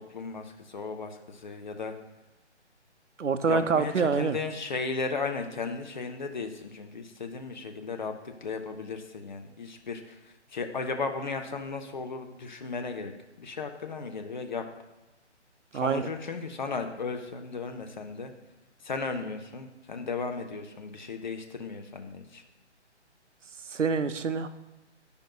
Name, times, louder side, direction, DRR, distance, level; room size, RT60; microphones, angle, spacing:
voice 1, 0.0-1.9 3.5-10.2 10.5-13.1 13.4-14.7 15.7-18.3 18.8-22.4, left 4 dB, 40° left, 5 dB, 0.6 m, -35 dB
voice 2, 3.2-4.4 15.7-16.0 23.7-24.5, right 5 dB, 85° right, 11 dB, 0.6 m, -26 dB
10.5 x 5.2 x 2.3 m, 1.0 s
figure-of-eight pair, 145°, 36 cm